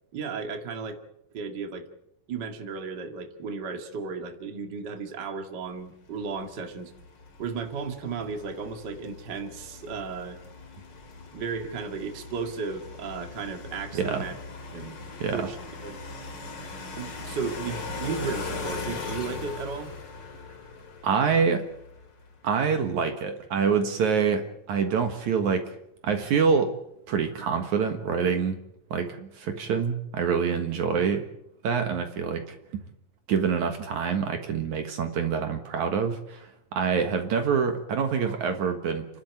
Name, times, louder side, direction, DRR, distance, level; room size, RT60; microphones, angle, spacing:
voice 1, 0.1-1.0 1.3-1.9 2.3-6.9 7.4-10.4 11.3-14.3 14.7-15.0 15.3-15.6 15.8-16.0 17.0-19.9, right 5 dB, 35° right, 5 dB, 2.3 m, -34 dB
sound 1, 6.2-22.4, left 4 dB, 35° left, 2.7 m, -40 dB
voice 2, 13.9-14.3 15.2-15.5 21.0-21.7 22.4-25.8 26.0-26.8 27.1-28.6 28.9-31.3 31.6-32.8 33.3-39.1, right 6 dB, 65° right, 6 dB, 2.8 m, -26 dB
30.0 x 12.0 x 9.2 m, 0.79 s
omnidirectional pair, 3.8 m